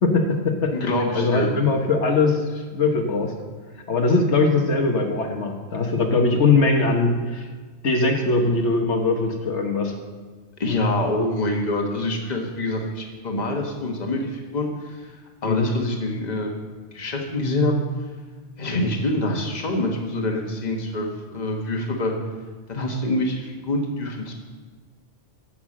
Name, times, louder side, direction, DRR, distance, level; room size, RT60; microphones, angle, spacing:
voice 1, 0.0-0.7 1.1-3.3 3.9-7.4 7.8-9.9 15.4-15.7, left 3 dB, 70° left, 2 dB, 1.4 m, -21 dB
voice 2, 0.7-1.5 10.6-15.0 15.4-16.6 16.9-17.7 18.6-22.1 22.7-24.3, left 1 dB, 35° left, 1 dB, 1.4 m, -25 dB
11.0 x 5.7 x 7.5 m, 1.4 s
omnidirectional pair, 1.2 m